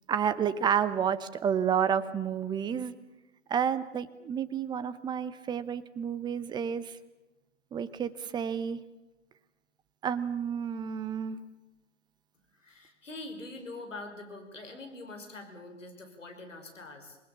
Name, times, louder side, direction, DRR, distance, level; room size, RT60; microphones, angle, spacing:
voice 1, 0.1-2.9 3.5-7.0 7.7-8.8 10.0-11.4, right 8 dB, 10° right, 13 dB, 0.9 m, -30 dB
voice 2, 12.5-17.2, left 2 dB, 85° left, 4 dB, 5.7 m, -44 dB
26.5 x 20.5 x 7.2 m, 1.0 s
figure-of-eight pair, 120°, 37 cm